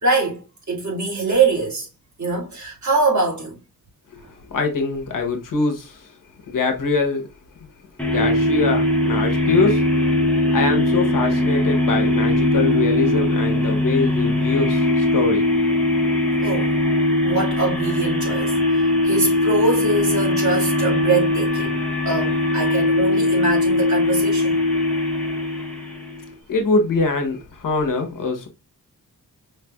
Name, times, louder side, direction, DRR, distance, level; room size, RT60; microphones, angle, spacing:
voice 1, 0.0-1.9 2.2-3.6 16.4-16.7 17.2-21.8 22.1-24.6, right 3 dB, 50° right, 2.2 m, -23 dB
voice 2, 4.5-6.1 6.5-7.3 7.6-7.7 8.1-9.8 10.5-15.5 26.5-28.5, left 4 dB, 60° left, 1.0 m, -23 dB
sound 1, 8.0-26.3, left 1 dB, 5° left, 0.8 m, -20 dB
4.9 x 3.2 x 2.3 m
wide cardioid pair, 150°, 37 cm